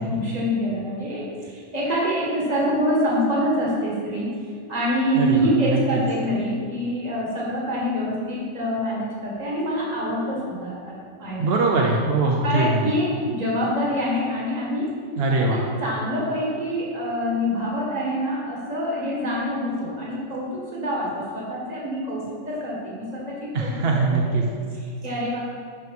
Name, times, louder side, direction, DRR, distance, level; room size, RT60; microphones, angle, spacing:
voice 1, 0.0-4.3 4.7-11.5 12.4-14.9 15.3-24.0 24.5-25.4, equal, 30° right, -4 dB, 1.9 m, -26 dB
voice 2, 5.7-6.0 11.4-12.9 15.2-15.7 23.5-24.4, right 3 dB, 50° right, 0 dB, 0.8 m, -22 dB
10.5 x 5.2 x 4.8 m, 2.3 s
omnidirectional pair, 1.5 m